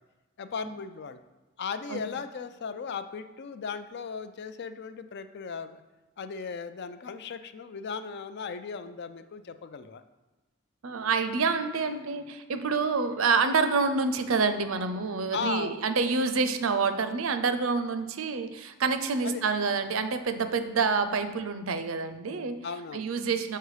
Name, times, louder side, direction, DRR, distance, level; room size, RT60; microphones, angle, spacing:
voice 1, 0.4-1.2 1.6-5.8 6.2-10.0 15.3-15.8 19.2-19.4 22.6-23.1, left 5 dB, 55° left, 10 dB, 0.4 m, -36 dB
voice 2, 10.8-22.6 22.9-23.6, right 4 dB, 80° right, 10 dB, 0.6 m, -27 dB
6.6 x 4.6 x 4.9 m, 1.2 s
head